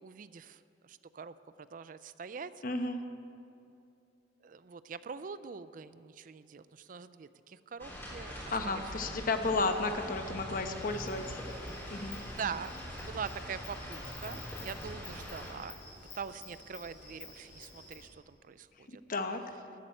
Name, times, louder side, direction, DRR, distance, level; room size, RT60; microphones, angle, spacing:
voice 1, 0.0-2.5 4.4-8.4 8.7-8.8 12.2-15.8 16.1-19.0, right 6 dB, 50° right, 14 dB, 0.4 m, -43 dB
voice 2, 2.6-3.0 8.5-11.4 11.9-12.2 18.9-19.4, left 3 dB, 50° left, 7 dB, 1.0 m, -33 dB
sound 1, 7.8-15.5, equal, 15° left, 3.4 m, -44 dB
sound 2, 9.9-15.2, equal, 70° right, 2.7 m, -49 dB
Insect, 10.7-18.1, left 4 dB, 75° left, 3.3 m, -51 dB
13.0 x 8.7 x 9.0 m, 2.7 s
head